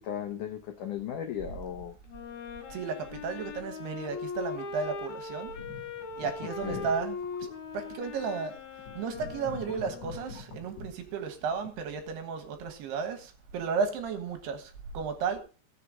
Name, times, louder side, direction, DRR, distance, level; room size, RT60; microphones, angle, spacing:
voice 1, 0.0-1.9 6.6-6.9, left 9 dB, 80° left, 4 dB, 1.8 m, -36 dB
Wind instrument woodwind instrument, 2.1-10.5, left 4 dB, 65° left, 3.6 m, -40 dB
voice 2, 2.7-5.5 6.2-7.2 7.7-8.5 9.0-15.4, right 5 dB, 70° right, 7 dB, 3.2 m, -33 dB
sound 1, 5.5-6.4 6.7-7.7 8.2-8.3 8.8-10.9, left 3 dB, 45° left, 3.0 m, -44 dB
18.0 x 6.8 x 3.8 m, 0.36 s
omnidirectional pair, 5.1 m